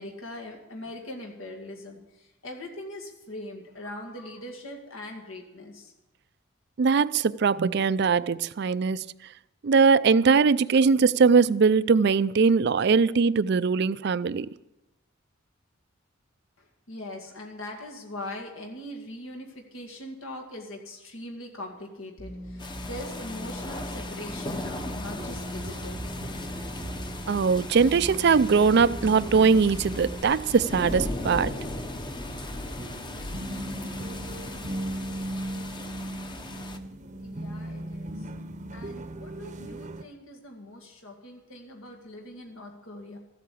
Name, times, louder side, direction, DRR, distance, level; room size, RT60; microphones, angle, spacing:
voice 1, 0.0-5.9 16.6-26.1 37.2-38.3 38.7-43.2, left 1 dB, 80° left, 2.0 m, -41 dB
voice 2, 6.8-9.1 9.6-14.5 27.3-31.5, right 5 dB, 55° right, 0.4 m, -21 dB
sound 1, 22.2-30.2, equal, 40° left, 3.1 m, -40 dB
sound 2, 22.6-36.8, left 2 dB, 20° left, 0.9 m, -38 dB
sound 3, 24.6-40.0, right 1 dB, 35° right, 0.8 m, -39 dB
14.5 x 8.6 x 8.4 m
head